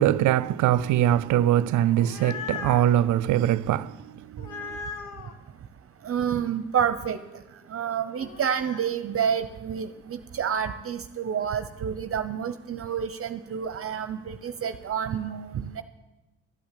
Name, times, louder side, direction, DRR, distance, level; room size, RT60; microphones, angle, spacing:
voice 1, 0.0-4.8, right 12 dB, 75° right, 0.5 m, -23 dB
sound 1, 1.8-3.0 4.4-5.3 8.1-8.9, left 6 dB, 90° left, 1.1 m, -38 dB
voice 2, 6.0-7.2 7.7-15.8, right 8 dB, 50° right, 0.8 m, -29 dB
12.5 x 8.7 x 8.4 m
cardioid pair, 90°, 30 cm